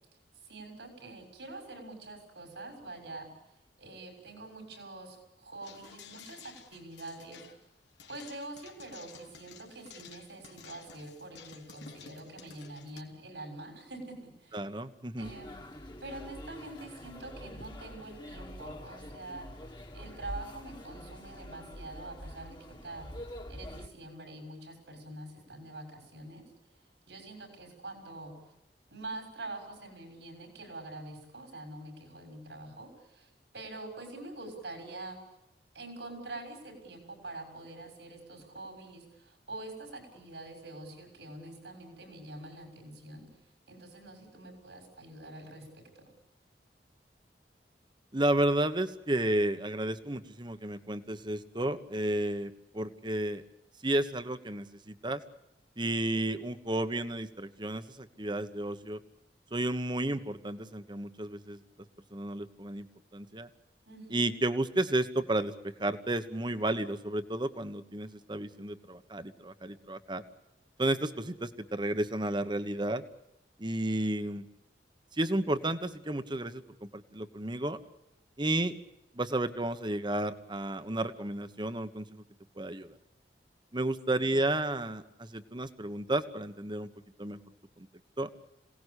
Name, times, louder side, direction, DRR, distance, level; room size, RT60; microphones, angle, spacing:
voice 1, 0.4-3.3 3.8-7.4 8.1-14.6 15.2-15.6 16.0-23.1 23.5-26.4 27.1-28.3 28.9-35.2 35.7-43.3 43.7-46.0 63.9-64.3 84.2-84.4, right 2 dB, 85° right, 4 dB, 6.5 m, -45 dB
sound 1, 5.6-13.0, left 6 dB, 85° left, 2.8 m, -53 dB
voice 2, 14.5-15.3 48.1-53.4 53.8-55.2 55.8-59.0 59.5-61.6 62.1-62.9 63.1-63.5 64.1-65.5 65.8-70.2 70.8-73.0 73.6-74.5 75.1-77.8 78.4-78.8 79.1-82.2 82.6-83.0 83.7-86.9 87.2-87.4 87.8-87.9 88.2-88.3, right 1 dB, 25° right, 10 dB, 1.2 m, -32 dB
sound 2, 15.2-23.9, left 1 dB, 25° left, 1.9 m, -45 dB
27.0 x 18.0 x 8.3 m, 0.88 s
head